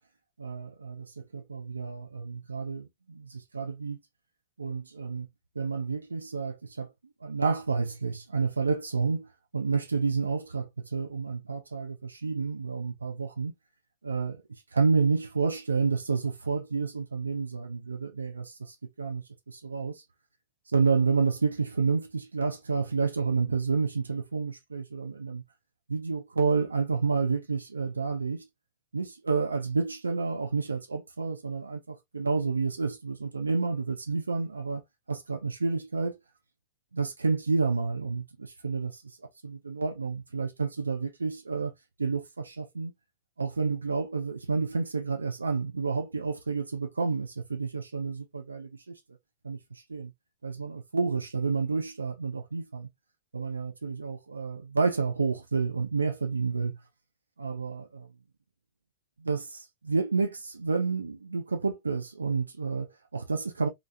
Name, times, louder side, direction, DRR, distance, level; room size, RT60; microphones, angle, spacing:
voice 1, 0.4-4.0 4.6-5.3 5.6-6.9 7.2-9.3 9.5-13.5 14.0-14.4 14.7-20.0 20.7-25.4 25.9-28.4 28.9-34.8 35.1-36.2 36.9-38.9 39.4-41.7 42.0-42.9 43.4-49.0 49.4-49.6 49.9-50.1 50.4-52.9 53.3-56.8 57.4-58.1 59.2-63.7, right 4 dB, 75° right, 0.7 m, -30 dB
3.4 x 2.0 x 2.5 m
figure-of-eight pair, 90°, 0 cm